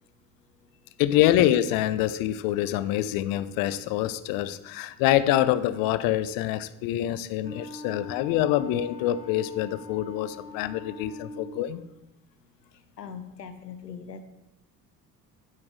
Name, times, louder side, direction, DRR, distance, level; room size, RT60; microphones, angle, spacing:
voice 1, 1.0-11.8, left 13 dB, 45° left, 15 dB, 0.6 m, -25 dB
Wind instrument woodwind instrument, 7.4-11.7, left 3 dB, 15° right, 1.8 m, -43 dB
voice 2, 12.7-14.2, left 6 dB, 85° left, 10 dB, 0.7 m, -41 dB
8.4 x 5.7 x 4.9 m, 0.94 s
figure-of-eight pair, 55°, 48 cm